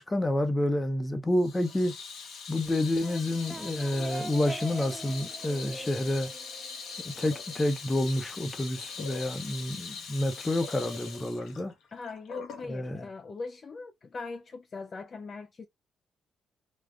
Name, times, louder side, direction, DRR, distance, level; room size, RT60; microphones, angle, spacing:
voice 1, 0.0-2.0 2.5-6.3 7.2-11.7 12.7-13.1, left 1 dB, 20° left, 0.7 m, -29 dB
Water tap faucet / Sink (filling or washing), 1.4-12.7, left 5 dB, 75° left, 0.9 m, -42 dB
sound 1, 3.0-7.5, right 3 dB, 25° right, 0.4 m, -43 dB
voice 2, 11.9-15.7, left 4 dB, 40° left, 0.4 m, -40 dB
3.5 x 2.3 x 2.3 m
cardioid pair, 90°, 0 cm